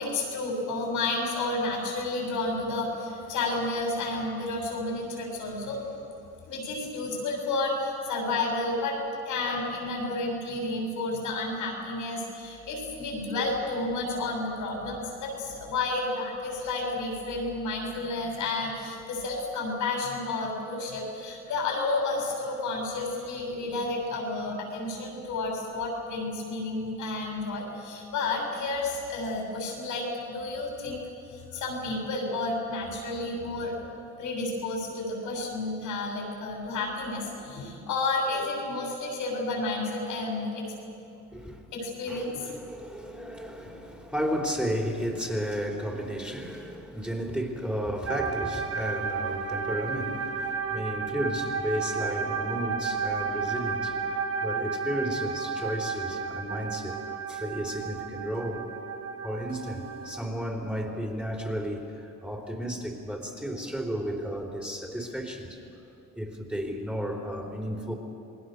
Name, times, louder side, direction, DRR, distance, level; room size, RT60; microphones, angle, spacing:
voice 1, 0.0-5.8 6.5-9.0 9.3-31.0 31.3-33.8 34.2-40.6 41.7-42.3 43.6-43.7, left 2 dB, 85° left, 0 dB, 7.4 m, -31 dB
voice 2, 41.3-41.6 42.1-58.7 59.2-65.8 66.1-67.9, equal, 5° right, 0 dB, 4.0 m, -33 dB
sound 1, 48.1-60.2, right 5 dB, 45° right, 1.5 m, -32 dB
28.0 x 20.5 x 6.8 m, 2.7 s
cardioid pair, 90°, 30 cm